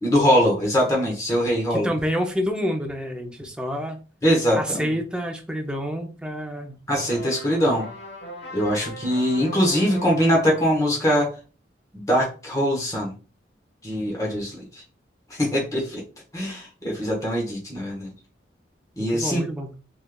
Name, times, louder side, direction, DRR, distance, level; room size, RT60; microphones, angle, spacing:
voice 1, 0.0-1.9 4.2-5.0 6.9-7.9 8.5-11.3 11.9-13.1 13.8-14.8 15.3-16.0 16.3-18.1 19.0-19.4, equal, 15° left, -3 dB, 1.1 m, -22 dB
voice 2, 1.7-4.0 4.6-6.8 19.0-19.7, equal, 5° right, 3 dB, 0.5 m, -28 dB
sound 1, 6.9-10.9, right 1 dB, 65° left, 1.2 m, -39 dB
3.4 x 3.2 x 2.3 m, 0.33 s
head